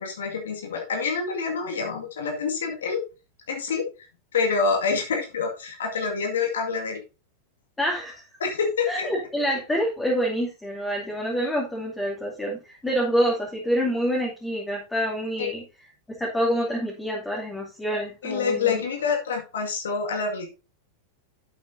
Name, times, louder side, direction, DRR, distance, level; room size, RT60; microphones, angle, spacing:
voice 1, 0.0-3.0 3.5-3.8 4.3-7.0 8.4-9.1 15.4-15.5 18.2-20.5, left 5 dB, 75° left, 3 dB, 2.0 m, -27 dB
voice 2, 7.8-8.2 8.9-15.6 16.2-18.8, equal, 10° left, -3 dB, 2.6 m, -27 dB
10.5 x 7.9 x 2.7 m, 0.31 s
hypercardioid pair, 95°, 0 cm